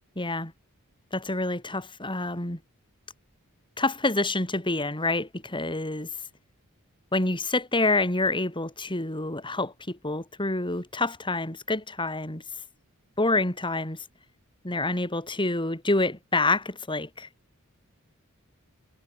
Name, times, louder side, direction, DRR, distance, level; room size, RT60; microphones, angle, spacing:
voice 1, 0.1-0.5 1.1-2.6 3.8-6.1 7.1-12.4 13.2-14.0 14.6-17.3, left 2 dB, 20° left, 5.0 m, -27 dB
head